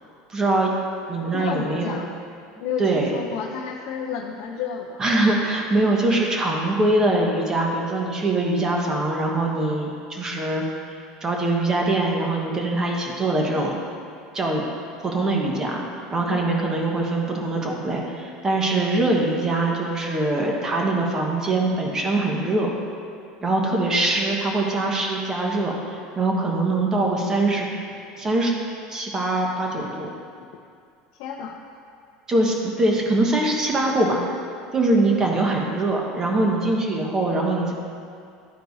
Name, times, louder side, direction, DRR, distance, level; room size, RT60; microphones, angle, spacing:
voice 1, 0.3-0.7 1.1-1.9 2.8-3.1 5.0-10.6 11.2-13.7 14.3-14.6 15.0-15.8 16.1-22.7 23.4-27.7 28.2-28.5 28.9-30.1 32.3-34.4 34.7-37.7, right 2 dB, 25° right, 0 dB, 1.2 m, -23 dB
voice 2, 1.3-2.1 2.6-5.0 16.3-16.5 23.7-24.0 31.2-31.6, left 7 dB, 70° left, 1 dB, 0.5 m, -31 dB
12.0 x 4.6 x 2.7 m, 2.4 s
supercardioid pair, 115°, 2 cm